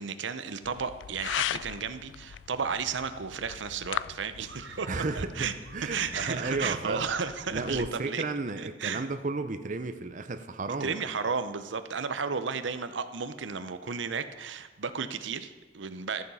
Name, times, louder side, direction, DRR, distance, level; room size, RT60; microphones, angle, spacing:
voice 1, 0.0-5.5 5.9-8.2 8.6-9.1 10.7-16.2, right 5 dB, 90° right, 11 dB, 0.7 m, -33 dB
sound 1, 0.6-7.9, left 10 dB, 80° left, 0.3 m, -39 dB
girl scream frank, 4.4-6.7 7.0-7.1, right 5 dB, 70° right, 1.2 m, -47 dB
voice 2, 4.9-7.1 7.5-10.9, right 3 dB, 45° right, 9 dB, 0.7 m, -33 dB
14.0 x 7.3 x 5.5 m, 1.3 s
head